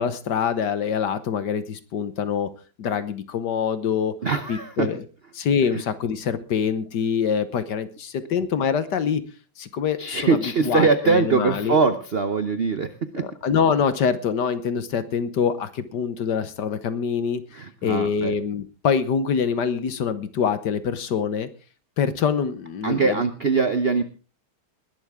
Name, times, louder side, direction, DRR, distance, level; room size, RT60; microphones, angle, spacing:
voice 1, 0.0-2.5 2.8-4.1 4.5-5.0 5.3-9.2 9.6-10.4 10.6-11.7 13.2-17.4 17.8-21.5 22.0-23.2, left 7 dB, 60° left, 13 dB, 1.5 m, -25 dB
voice 2, 4.2-4.9 5.7-5.8 10.0-13.3 17.5-18.3 22.8-24.0, right 4 dB, 85° right, 10 dB, 0.5 m, -22 dB
20.0 x 11.5 x 3.6 m, 0.35 s
omnidirectional pair, 2.4 m